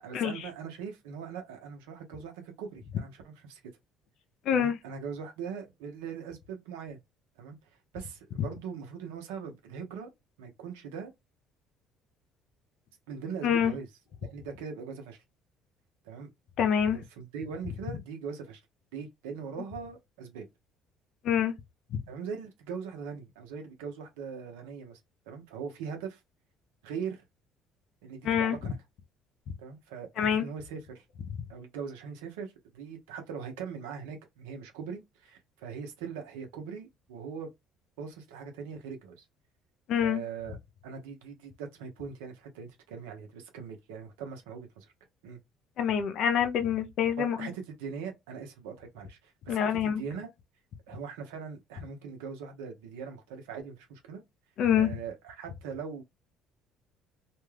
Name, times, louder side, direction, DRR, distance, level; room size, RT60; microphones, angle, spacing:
voice 1, 0.0-3.6 4.5-7.0 7.4-7.6 7.9-10.1 10.4-11.1 13.1-13.9 14.2-15.2 16.0-16.3 16.9-18.6 18.9-20.5 22.1-25.0 25.3-26.2 26.8-27.2 28.0-28.8 29.6-31.0 31.5-37.5 38.0-39.2 40.0-40.6 40.8-44.9 45.2-45.4 47.2-50.3 50.9-54.2 54.7-56.0, right 6 dB, 90° right, 0.8 m, -41 dB
voice 2, 4.5-4.8 13.4-13.7 16.6-17.0 21.2-21.5 28.2-28.6 30.2-30.5 39.9-40.2 45.8-47.5 49.5-50.0 54.6-54.9, left 8 dB, 65° left, 0.6 m, -26 dB
2.4 x 2.3 x 3.2 m
supercardioid pair, 75°, 0 cm